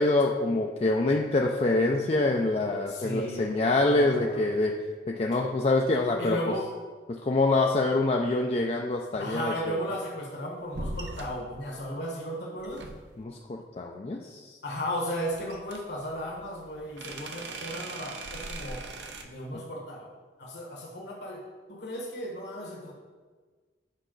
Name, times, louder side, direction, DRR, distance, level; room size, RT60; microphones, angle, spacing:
voice 1, 0.0-4.8 5.1-6.4 7.1-9.8 13.2-14.6, left 2 dB, 35° left, 1 dB, 0.4 m, -25 dB
voice 2, 2.9-4.4 6.2-6.7 9.2-12.8 14.6-18.8 19.2-20.1 20.4-21.4 21.7-22.9, equal, 70° left, -3 dB, 1.3 m, -35 dB
sound 1, 10.7-11.4 12.6-13.2 15.3-19.2, right 2 dB, 75° right, 0.8 m, -40 dB
8.3 x 5.4 x 3.9 m, 1.5 s
head